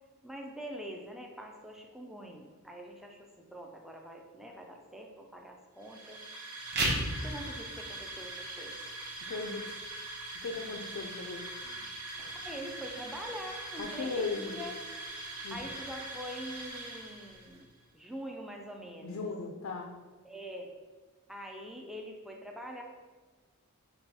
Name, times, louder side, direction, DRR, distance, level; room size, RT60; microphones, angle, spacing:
voice 1, 0.2-6.2 7.2-8.9 11.6-11.9 12.4-14.7 15.3-19.2 20.2-20.7 21.3-22.8, equal, ahead, 1 dB, 0.4 m, -44 dB
sound 1, 5.8-17.6, right 2 dB, 80° right, 0.9 m, -43 dB
sound 2, 6.6-17.6, right 1 dB, 50° right, 1.0 m, -41 dB
voice 2, 9.3-9.7 10.4-11.4 13.8-14.6 15.4-15.6 19.0-19.9, left 4 dB, 65° left, 3 dB, 0.4 m, -37 dB
5.4 x 2.3 x 4.1 m, 1.4 s
head